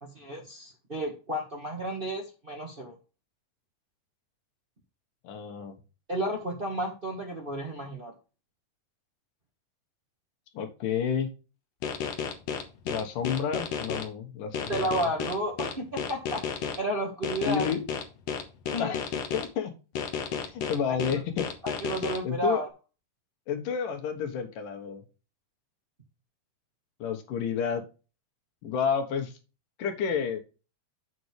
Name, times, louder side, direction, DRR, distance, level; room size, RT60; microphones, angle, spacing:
voice 1, 0.0-2.9 6.1-8.1 14.7-17.7 18.7-19.0 20.9-21.2 21.6-22.7, right 1 dB, 40° right, 0 dB, 0.7 m, -32 dB
voice 2, 5.2-5.8 10.5-11.3 12.8-15.1 17.5-17.8 18.8-19.7 20.5-21.4 22.2-22.6 23.5-25.0 27.0-27.8 28.6-29.3 29.8-30.4, left 7 dB, 75° left, 6 dB, 2.9 m, -30 dB
sound 1, 11.8-14.0 14.5-16.8 17.2-19.5 20.0-22.2, left 7 dB, 60° left, 2.0 m, -32 dB
7.7 x 6.9 x 3.3 m, 0.31 s
omnidirectional pair, 3.8 m